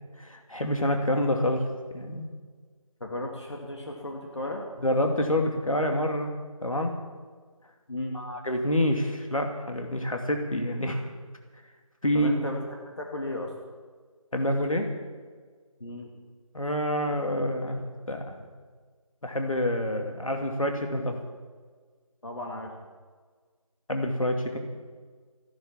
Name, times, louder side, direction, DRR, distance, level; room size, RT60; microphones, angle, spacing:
voice 1, 0.2-1.7 1.9-2.3 4.8-6.3 6.6-6.9 8.1-11.1 12.0-12.4 14.3-14.9 16.5-18.5 19.2-21.2 23.9-24.6, left 1 dB, 70° left, 4 dB, 2.5 m, -27 dB
voice 2, 3.0-4.7 7.9-8.2 12.1-12.6 13.0-13.5 15.8-16.1 22.2-22.7, left 1 dB, 55° left, 0 dB, 2.4 m, -34 dB
15.0 x 12.0 x 7.2 m, 1.5 s
figure-of-eight pair, 170°, 18 cm